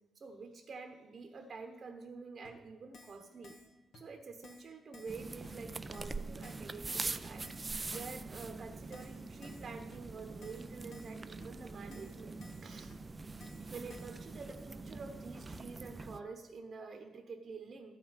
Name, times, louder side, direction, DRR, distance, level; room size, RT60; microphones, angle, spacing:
voice 1, 0.1-3.6 3.9-12.9 13.7-17.9, right 4 dB, 45° right, 6 dB, 1.1 m, -48 dB
Keyboard (musical), 2.4-2.5 2.9-3.2 3.4-3.7 3.9-4.0 4.4-4.7 4.9-5.2 5.4-5.5 5.9-6.2 6.4-6.7 6.9-7.0 7.4-7.7 7.9-8.1 8.4-8.5 8.9-9.1 9.4-9.7 9.9-10.0 10.4-10.6 10.9-11.1 11.4-11.5 11.9-12.1 12.4-12.6 12.9-13.0 13.4-13.6 13.9-14.1, left 3 dB, 70° left, 2.1 m, -56 dB
sound 1, 5.1-16.2, right 3 dB, 25° right, 0.5 m, -44 dB
12.0 x 5.4 x 8.9 m, 1.2 s
cardioid pair, 75°, 0 cm